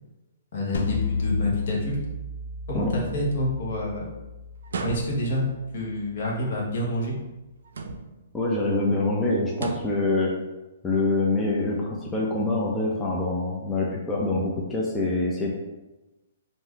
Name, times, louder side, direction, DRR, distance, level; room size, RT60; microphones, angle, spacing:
voice 1, 0.5-2.0 2.7-4.0 4.8-5.4 5.7-7.1, left 1 dB, 60° left, -2 dB, 0.9 m, -28 dB
sound 1, 0.7-5.8, left 3 dB, 80° left, 0.4 m, -32 dB
sound 2, 4.6-5.5 7.6-8.3 9.5-10.1, right 4 dB, 80° right, 0.3 m, -34 dB
voice 2, 8.3-10.3 10.8-15.5, left 2 dB, 10° left, -3 dB, 0.4 m, -25 dB
2.5 x 2.2 x 3.5 m, 1.0 s
hypercardioid pair, 155°, 0 cm